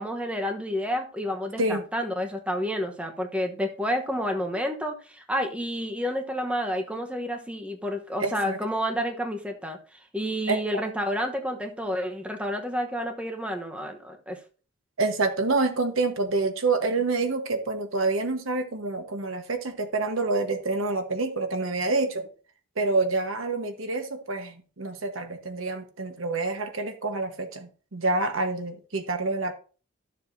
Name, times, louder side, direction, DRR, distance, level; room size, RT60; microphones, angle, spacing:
voice 1, 0.0-9.8 10.1-14.4, equal, 5° right, 1.0 m, -30 dB
voice 2, 8.2-8.6 10.5-10.8 15.0-22.3 22.8-29.5, right 3 dB, 75° right, 1.2 m, -27 dB
12.5 x 7.0 x 2.7 m
head